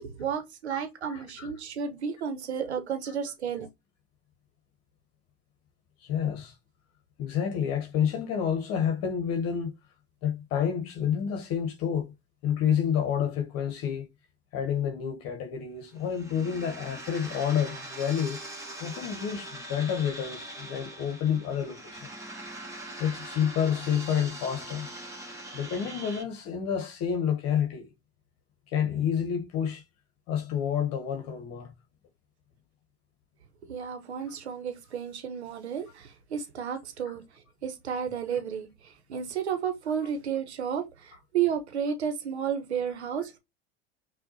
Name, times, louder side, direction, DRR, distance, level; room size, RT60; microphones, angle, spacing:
voice 1, 0.0-3.7 33.6-37.2 37.6-43.4, right 7 dB, 80° right, 0.9 m, -32 dB
voice 2, 0.7-1.5 3.1-3.2 6.0-6.5 7.2-9.7 10.2-12.1 12.4-14.1 14.5-18.4 18.8-22.1 23.0-24.9 25.5-27.9 28.7-29.8 30.3-31.7 37.1-37.2 38.3-38.4 40.0-40.1, left 8 dB, 50° left, 1.0 m, -29 dB
sound 1, 16.0-26.2, right 1 dB, 10° right, 1.4 m, -42 dB
5.8 x 2.4 x 2.7 m
hypercardioid pair, 80°, 33 cm